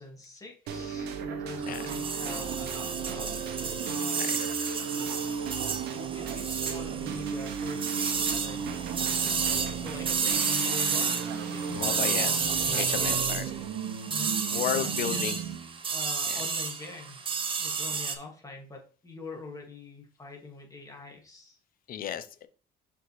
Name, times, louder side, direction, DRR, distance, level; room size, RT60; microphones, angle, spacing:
voice 1, 0.0-3.3 3.8-4.6 5.9-8.7 9.0-13.2 13.5-13.8 14.1-15.3 15.8-17.2 17.6-21.6, left 3 dB, 20° left, 0 dB, 2.1 m, -44 dB
sound 1, 0.7-15.8, right 7 dB, 75° right, 0.9 m, -35 dB
sound 2, 1.6-18.2, right 5 dB, 30° right, 0.8 m, -31 dB
voice 2, 11.7-12.4 12.7-13.5 14.5-15.4 16.3-16.4 21.9-22.5, left 10 dB, 55° left, 13 dB, 0.7 m, -33 dB
6.6 x 4.6 x 3.2 m, 0.39 s
cardioid pair, 110°, 17 cm